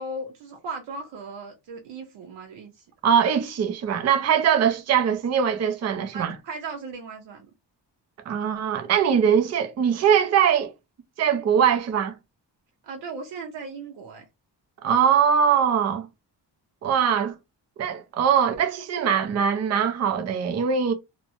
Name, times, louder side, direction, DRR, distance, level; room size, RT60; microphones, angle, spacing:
voice 1, 0.0-2.8 6.1-7.5 12.8-14.3, right 3 dB, 85° right, 0.7 m, -37 dB
voice 2, 3.0-6.3 8.3-10.7 11.2-12.2 14.8-16.1 16.8-17.3 17.8-20.9, right 8 dB, 40° right, 0.5 m, -22 dB
3.0 x 2.0 x 2.6 m
wide cardioid pair, 160°, 43 cm